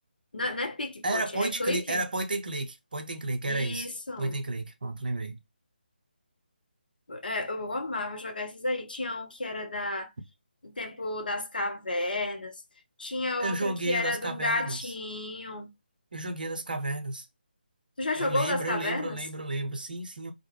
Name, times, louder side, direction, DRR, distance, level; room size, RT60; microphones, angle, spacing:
voice 1, 0.3-2.0 3.5-4.4 7.1-10.1 10.6-12.6 13.0-15.7 18.0-19.2, left 2 dB, 65° left, 0.6 m, -32 dB
voice 2, 1.0-3.9 4.2-5.4 13.4-14.9 16.1-17.3 18.2-20.3, right 2 dB, 60° right, 0.6 m, -32 dB
2.3 x 2.1 x 3.0 m
figure-of-eight pair, 150°, 5 cm